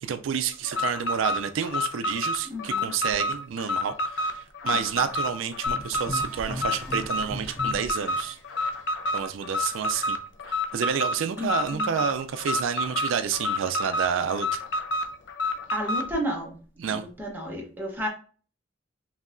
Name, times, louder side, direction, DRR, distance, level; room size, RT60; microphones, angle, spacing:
voice 1, 0.0-8.4 9.1-10.2 10.5-14.6 16.8-17.1, right 7 dB, 80° right, 0.4 m, -29 dB
Alarm, 0.6-16.1, left 2 dB, 60° left, 0.5 m, -29 dB
voice 2, 2.5-2.9 4.7-4.8 11.4-11.9 15.7-16.6 16.8-18.1, equal, 10° right, 0.9 m, -32 dB
sound 1, 5.7-8.4, equal, 15° left, 1.6 m, -37 dB
5.3 x 2.7 x 2.5 m
head